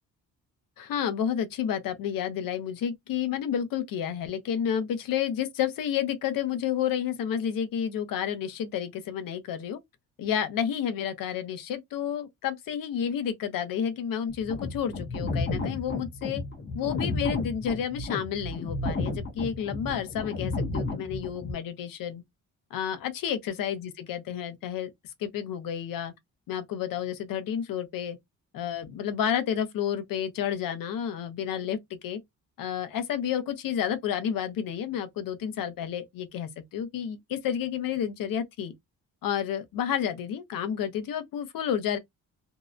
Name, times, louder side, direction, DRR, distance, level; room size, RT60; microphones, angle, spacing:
voice 1, 0.8-9.8 10.2-16.4 16.7-22.2 22.7-24.9 25.2-26.1 26.5-28.2 28.5-32.2 32.6-38.7 39.2-42.0, left 9 dB, 75° left, 0.7 m, -30 dB
sound 1, 14.3-21.5, left 2 dB, 35° left, 0.7 m, -32 dB
2.7 x 2.1 x 2.4 m
cardioid pair, 140°, 34 cm